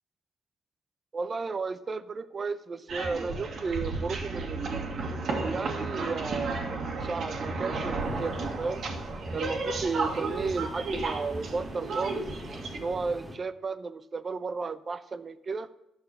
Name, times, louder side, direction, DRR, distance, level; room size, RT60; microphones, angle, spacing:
voice 1, 1.1-4.9 5.4-8.8 9.3-12.3 12.8-15.7, right 4 dB, 35° right, 13 dB, 0.7 m, -33 dB
sound 1, 2.9-12.8, right 3 dB, 65° right, 1.9 m, -33 dB
sound 2, 8.0-13.4, right 1 dB, 15° right, 1.7 m, -43 dB
12.0 x 6.1 x 6.7 m, 0.87 s
cardioid pair, 90°, 0 cm